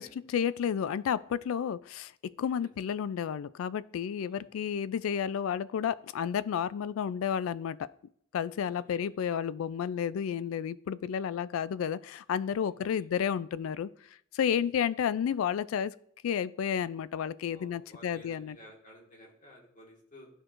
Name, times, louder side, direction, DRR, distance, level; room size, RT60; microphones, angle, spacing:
voice 1, 0.0-2.1 2.4-7.8 8.3-13.9 14.3-15.9 16.2-18.6, left 8 dB, 80° left, 19 dB, 0.3 m, -31 dB
voice 2, 8.6-9.1 12.6-13.1 17.5-20.3, equal, 40° left, -2 dB, 1.7 m, -54 dB
12.0 x 4.5 x 2.5 m, 0.65 s
head